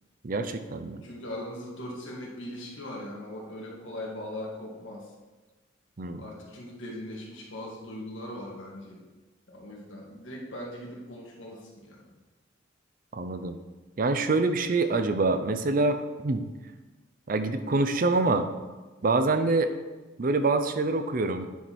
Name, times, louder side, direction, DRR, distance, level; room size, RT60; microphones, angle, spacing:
voice 1, 0.2-1.0 6.0-6.2 13.1-13.6 14.0-16.4 17.3-18.5 19.0-19.7 20.2-21.5, right 3 dB, 45° right, 9 dB, 0.5 m, -25 dB
voice 2, 0.9-5.1 6.2-9.0 9.5-12.1, left 1 dB, 85° left, -2 dB, 1.8 m, -40 dB
9.3 x 4.6 x 4.2 m, 1.2 s
head